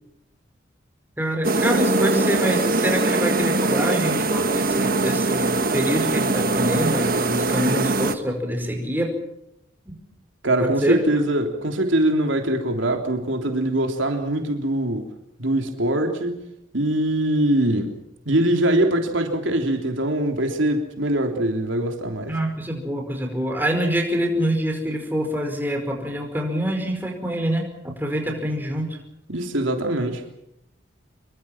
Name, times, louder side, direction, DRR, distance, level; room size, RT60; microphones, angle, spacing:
voice 1, 1.2-9.1 9.8-9.9 10.8-11.0 22.3-28.9, equal, 10° right, 5.1 m, -25 dB
sound 1, 1.4-8.2, right 2 dB, 45° right, 1.4 m, -22 dB
voice 2, 10.4-15.1 15.4-16.4 16.7-18.0 18.2-22.4 29.3-30.3, right 1 dB, 80° right, 3.4 m, -22 dB
26.0 x 23.5 x 5.9 m
head